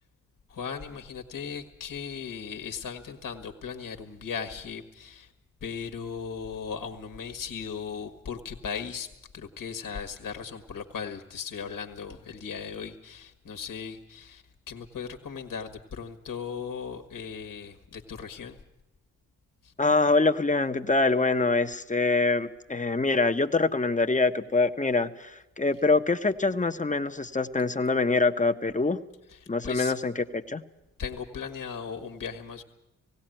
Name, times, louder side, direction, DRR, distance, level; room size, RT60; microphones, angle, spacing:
voice 1, 0.5-5.3 5.6-18.6 19.6-19.7 29.3-29.9 31.0-32.6, left 6 dB, 60° left, 6 dB, 1.7 m, -37 dB
voice 2, 19.8-29.0 29.5-30.6, left 3 dB, 20° left, 9 dB, 1.2 m, -25 dB
17.5 x 17.0 x 9.1 m, 0.92 s
supercardioid pair, 45°, 36 cm